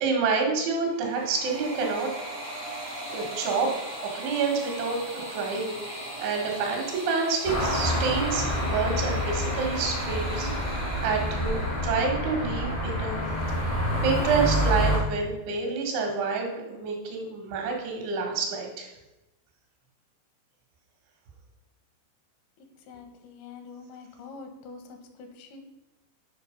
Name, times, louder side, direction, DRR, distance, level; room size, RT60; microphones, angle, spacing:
voice 1, 0.0-2.1 3.1-3.7 4.0-13.2 14.0-18.9, right 5 dB, 90° right, 2 dB, 3.9 m, -28 dB
sound 1, 0.8-11.9, right 1 dB, 65° right, 0.6 m, -39 dB
sound 2, 7.4-15.0, equal, 40° left, 0.6 m, -27 dB
voice 2, 22.9-25.6, left 4 dB, 80° left, 5 dB, 3.3 m, -45 dB
8.6 x 5.6 x 5.1 m, 0.99 s
omnidirectional pair, 5.1 m